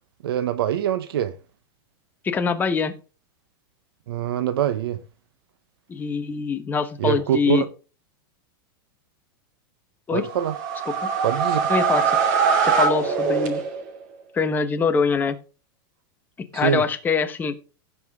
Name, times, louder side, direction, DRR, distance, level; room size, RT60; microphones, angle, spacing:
voice 1, 0.2-1.3 4.1-5.0 7.0-7.7 10.1-10.5 11.2-11.6 16.5-16.8, right 10 dB, 80° right, 0.9 m, -24 dB
voice 2, 2.2-2.9 5.9-7.6 10.1-10.3 10.9-11.1 11.7-12.2 12.6-13.6 14.3-15.4 16.5-17.5, left 5 dB, 15° left, 1.0 m, -24 dB
sound 1, 10.2-14.0, right 5 dB, 50° right, 2.6 m, -22 dB
16.5 x 5.7 x 3.6 m
supercardioid pair, 155°, 12 cm